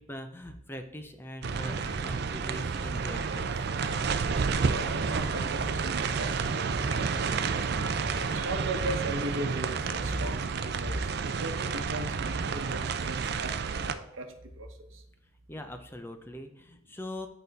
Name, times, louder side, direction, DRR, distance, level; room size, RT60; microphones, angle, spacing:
voice 1, 0.0-3.7 15.5-17.3, left 1 dB, 10° left, 6 dB, 0.5 m, -42 dB
sound 1, 1.4-13.9, right 5 dB, 55° right, 0.4 m, -30 dB
voice 2, 4.3-15.0, right 2 dB, 85° right, 6 dB, 1.0 m, -37 dB
8.7 x 4.0 x 4.1 m, 0.83 s
head